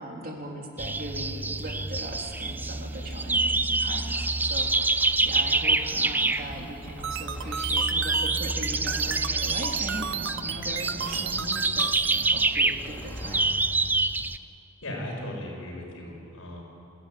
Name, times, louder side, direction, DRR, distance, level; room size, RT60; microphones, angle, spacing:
voice 1, 0.0-13.5, right 1 dB, 45° right, 0 dB, 3.5 m, -39 dB
sound 1, 0.8-14.4, right 2 dB, 10° right, 0.4 m, -27 dB
Tearing, 3.9-5.7 6.2-7.6 8.7-9.2 9.8-11.3 12.7-13.5, equal, 10° left, 3.4 m, -47 dB
sound 2, 7.0-12.2, right 9 dB, 60° right, 0.8 m, -33 dB
voice 2, 14.8-16.6, left 1 dB, 70° left, -1 dB, 6.9 m, -37 dB
29.0 x 15.0 x 9.4 m, 2.7 s
head